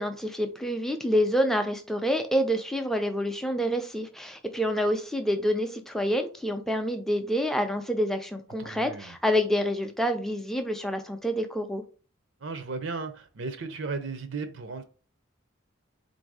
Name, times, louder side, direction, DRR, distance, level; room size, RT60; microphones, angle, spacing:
voice 1, 0.0-11.8, equal, ahead, 0.4 m, -27 dB
voice 2, 8.6-9.2 12.4-14.8, right 4 dB, 65° right, 0.6 m, -35 dB
4.0 x 2.6 x 4.7 m
head